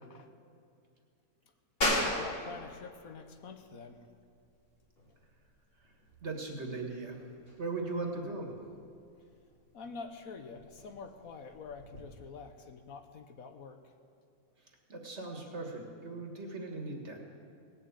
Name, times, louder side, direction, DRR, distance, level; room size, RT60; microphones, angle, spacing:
voice 1, 1.8-4.0 9.2-9.3 9.7-13.9, left 4 dB, 70° left, 7 dB, 1.3 m, -47 dB
sound 1, 1.8-12.0, left 1 dB, 40° left, 2.7 m, -39 dB
voice 2, 6.2-7.2 7.6-8.6 14.9-17.2, right 3 dB, 45° right, 2 dB, 2.0 m, -38 dB
18.0 x 7.3 x 8.1 m, 2.4 s
omnidirectional pair, 1.6 m